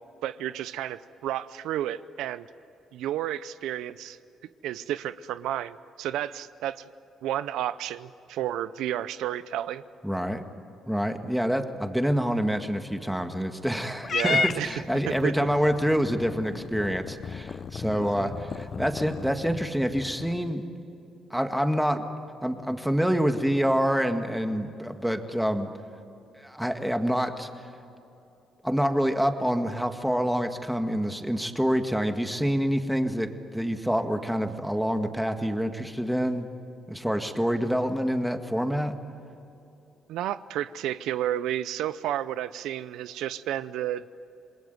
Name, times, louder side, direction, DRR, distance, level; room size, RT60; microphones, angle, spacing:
voice 1, 0.2-2.5 2.9-4.2 4.6-6.9 7.2-9.8 14.1-14.7 15.1-15.3 17.9-18.3 40.1-44.0, right 12 dB, 90° right, 15 dB, 0.6 m, -31 dB
voice 2, 10.0-10.4 10.9-20.6 21.3-22.1 22.4-25.7 26.4-27.5 28.6-36.5 36.9-39.0, equal, ahead, 6 dB, 1.9 m, -27 dB
Purr / Meow, 14.0-20.5, left 6 dB, 45° left, 0.6 m, -34 dB
27.5 x 20.5 x 9.3 m, 2.8 s
cardioid pair, 90°, 0 cm